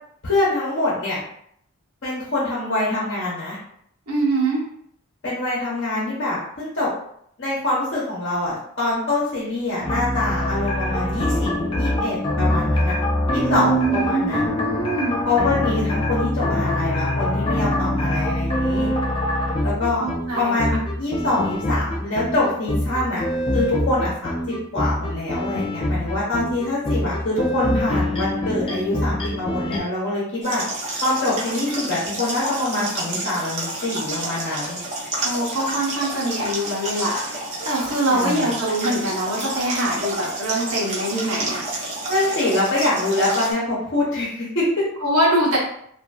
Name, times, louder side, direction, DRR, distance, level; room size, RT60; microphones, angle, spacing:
voice 1, 0.2-1.2 2.0-3.6 5.2-6.9 7.4-12.9 13.3-14.5 15.2-18.9 19.6-20.0 20.4-23.2 23.5-30.6 31.0-34.8 38.1-38.5 42.1-44.9, left 2 dB, 55° left, -7 dB, 0.8 m, -24 dB
voice 2, 4.1-4.7 13.5-15.2 20.0-20.8 35.2-41.7 45.0-45.6, right 1 dB, 75° right, -5 dB, 0.9 m, -23 dB
sound 1, 9.8-29.8, left 1 dB, 25° left, 0.4 m, -24 dB
sound 2, 30.4-43.5, right 2 dB, 30° right, 0.6 m, -30 dB
2.6 x 2.5 x 2.3 m, 0.69 s
head